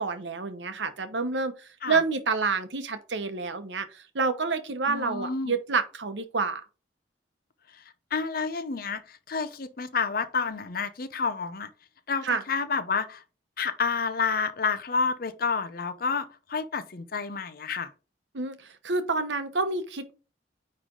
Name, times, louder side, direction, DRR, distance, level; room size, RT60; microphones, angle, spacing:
voice 1, 0.0-6.6 12.2-12.4 18.3-20.1, right 4 dB, 85° right, 0.9 m, -28 dB
voice 2, 4.9-5.6 7.7-7.8 8.1-11.7 12.1-13.2 13.6-17.9, left 5 dB, 55° left, 0.7 m, -29 dB
9.4 x 3.2 x 3.8 m
head